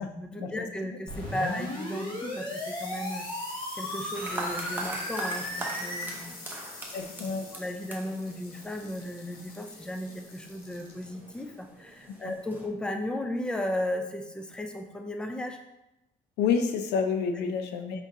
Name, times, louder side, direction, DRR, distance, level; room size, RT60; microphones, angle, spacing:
voice 1, 0.0-3.5 3.8-6.7 7.2-15.6 17.4-17.5, left 1 dB, 5° left, 4 dB, 0.4 m, -35 dB
sound 1, 1.1-6.1, left 1 dB, 30° left, 1.3 m, -35 dB
sound 2, 1.8-13.0, left 3 dB, 70° left, 1.0 m, -48 dB
sound 3, 4.1-12.7, right 2 dB, 10° right, 0.9 m, -42 dB
voice 2, 6.9-7.4 12.2-12.3 16.4-18.0, left 6 dB, 85° left, 6 dB, 0.5 m, -29 dB
5.2 x 3.5 x 2.7 m, 0.91 s
cardioid pair, 110°, 17 cm